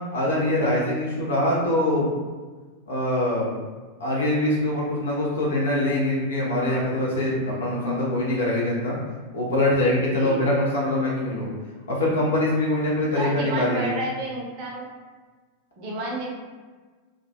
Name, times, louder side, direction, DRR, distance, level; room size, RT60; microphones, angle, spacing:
voice 1, 0.1-2.1 2.9-3.5 4.0-9.0 9.3-11.5 11.9-13.9, left 1 dB, 65° left, -5 dB, 0.6 m, -23 dB
voice 2, 9.9-10.5 13.1-14.9 15.8-16.3, right 2 dB, 45° right, -3 dB, 0.6 m, -31 dB
2.3 x 2.2 x 2.7 m, 1.4 s
figure-of-eight pair, 90°, 0 cm